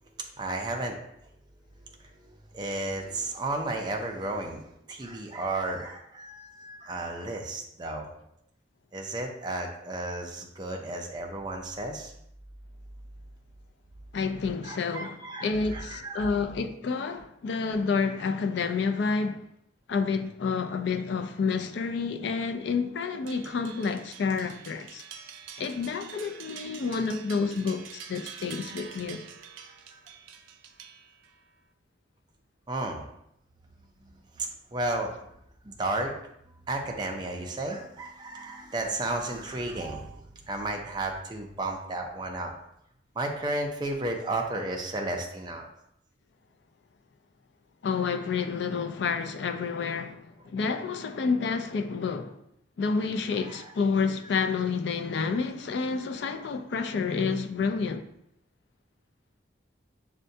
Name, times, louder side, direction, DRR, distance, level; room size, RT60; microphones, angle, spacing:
voice 1, 0.2-1.0 2.0-8.1 8.9-12.1 14.6-16.3 28.6-28.7 29.9-30.0 32.7-33.1 34.4-35.2 35.6-36.1 36.7-42.5 43.1-45.7 53.3-53.7, right 2 dB, 25° right, 0.4 m, -33 dB
voice 2, 14.1-19.4 19.9-25.0 25.6-29.2 47.8-52.4 52.8-58.1, left 5 dB, 65° left, 0.3 m, -29 dB
sound 1, 23.3-31.4, right 7 dB, 90° right, 0.4 m, -46 dB
6.4 x 2.2 x 2.6 m
head